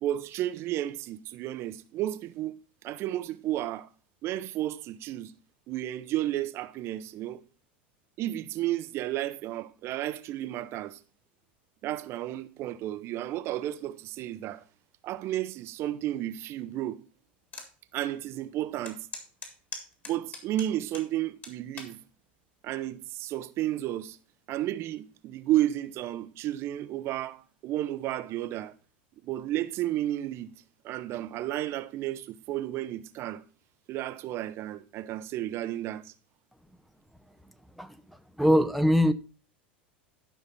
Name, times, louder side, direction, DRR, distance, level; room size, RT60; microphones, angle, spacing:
voice 1, 0.0-2.6 2.8-3.9 4.2-5.3 5.7-7.4 8.2-11.0 11.8-14.6 15.0-17.0 17.9-19.0 20.1-22.0 22.6-24.2 24.5-28.7 29.2-30.5 30.8-33.4 33.9-36.1, right 13 dB, 45° right, 0.8 m, -32 dB
sound 1, 17.5-17.7 18.2-18.3 18.9-21.1 21.4-22.0 22.7-23.0, left 3 dB, 30° left, 3.6 m, -41 dB
voice 2, 38.4-39.1, equal, ahead, 0.8 m, -22 dB
12.5 x 5.9 x 4.0 m
hypercardioid pair, 90°, 6 cm